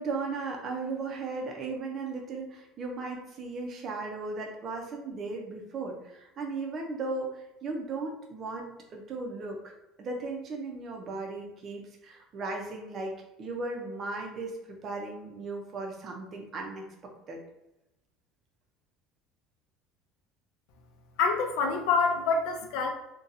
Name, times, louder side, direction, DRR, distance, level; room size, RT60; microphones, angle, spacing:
voice 1, 0.0-9.7 10.0-13.1 13.4-17.4, right 3 dB, 30° right, 2 dB, 0.6 m, -36 dB
voice 2, 21.2-22.9, left 4 dB, 70° left, 4 dB, 0.6 m, -26 dB
3.8 x 2.3 x 2.7 m, 0.91 s
cardioid pair, 165°, 0 cm